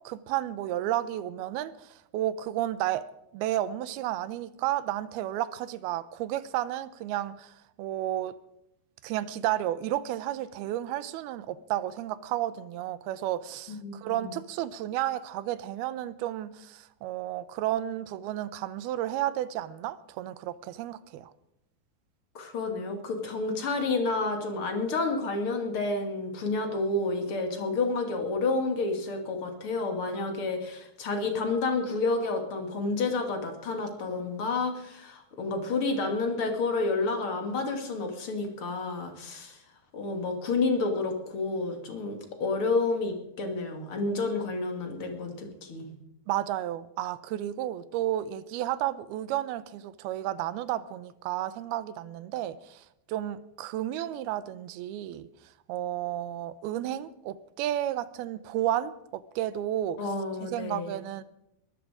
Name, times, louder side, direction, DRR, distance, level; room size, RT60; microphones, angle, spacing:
voice 1, 0.0-8.4 9.0-21.3 46.3-55.3 55.7-60.1 60.5-61.2, right 13 dB, 80° right, 2.6 m, -32 dB
voice 2, 13.8-14.3 22.3-39.6 39.9-45.9 60.0-60.9, left 3 dB, 40° left, 2.5 m, -30 dB
21.5 x 13.5 x 5.0 m
omnidirectional pair, 4.5 m